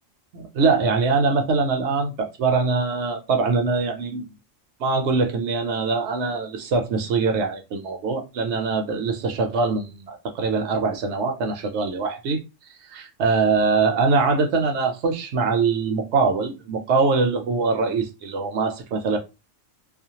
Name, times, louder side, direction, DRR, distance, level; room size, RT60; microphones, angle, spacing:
voice 1, 0.3-4.3 4.8-12.4 12.9-19.2, right 4 dB, 65° right, 0.8 m, -23 dB
2.4 x 2.1 x 2.7 m
omnidirectional pair, 1.3 m